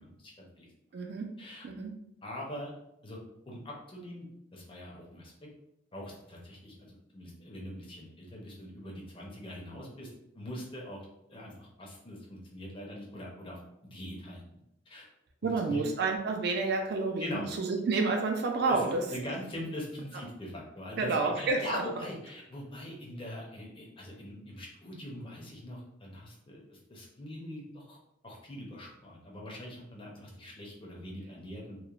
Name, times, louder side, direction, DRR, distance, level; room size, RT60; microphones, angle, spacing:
voice 1, 0.0-0.7 1.4-1.7 2.2-2.7 3.0-3.2 3.5-4.3 4.5-5.3 5.9-10.1 10.3-11.0 11.3-14.6 14.9-15.1 15.4-15.8 17.2-17.5 18.7-28.0 28.2-31.8, left 1 dB, 25° left, -2 dB, 0.5 m, -42 dB
voice 2, 0.9-1.3 1.6-1.9 15.4-17.3 17.6-19.0 21.0-21.6, right 3 dB, 50° right, 3 dB, 0.3 m, -29 dB
2.9 x 2.0 x 2.4 m, 0.83 s
head